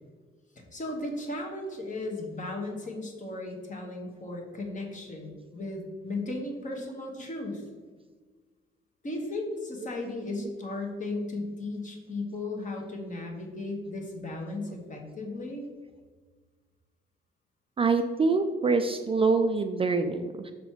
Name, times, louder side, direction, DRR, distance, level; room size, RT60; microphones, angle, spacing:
voice 1, 0.7-7.6 9.0-15.6, left 2 dB, 40° left, 1 dB, 1.4 m, -36 dB
voice 2, 17.8-20.5, right 4 dB, 30° right, 7 dB, 0.4 m, -25 dB
5.9 x 4.1 x 4.5 m, 1.4 s
cardioid pair, 90°, 20 cm